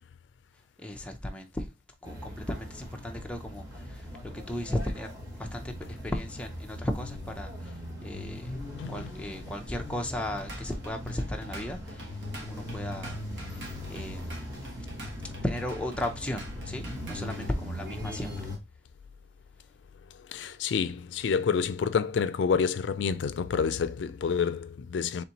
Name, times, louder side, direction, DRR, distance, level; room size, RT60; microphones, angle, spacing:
voice 1, 0.8-1.7 2.0-4.1 4.5-8.6 8.9-12.2 12.5-14.4 14.9-15.0 15.4-18.3, left 1 dB, 5° left, 0.6 m, -35 dB
sound 1, 2.0-18.6, left 1 dB, 20° right, 1.4 m, -40 dB
voice 2, 8.8-9.1 20.3-25.2, left 6 dB, 85° left, 0.4 m, -28 dB
Drum kit / Drum, 10.4-17.5, right 1 dB, 75° right, 1.2 m, -46 dB
4.1 x 3.4 x 2.9 m
head